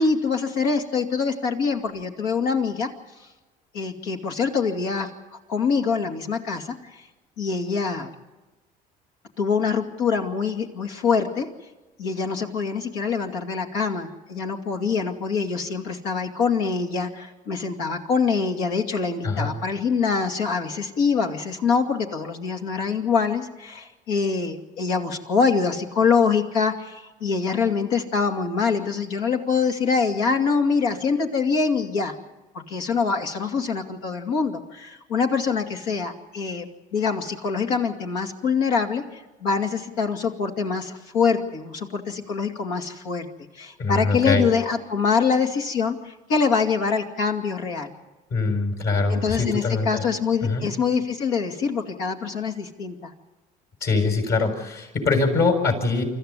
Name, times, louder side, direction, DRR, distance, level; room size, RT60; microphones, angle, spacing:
voice 1, 0.0-2.9 3.7-7.0 7.4-8.1 9.4-11.5 12.0-32.1 32.5-36.7 36.9-43.3 43.5-47.9 49.1-53.1, left 5 dB, 85° left, 3 dB, 2.6 m, -24 dB
voice 2, 43.8-44.5 48.3-50.0 50.4-50.7 53.8-56.0, left 3 dB, 60° left, 4 dB, 6.9 m, -23 dB
25.5 x 14.5 x 9.7 m, 1.1 s
supercardioid pair, 70°, 19 cm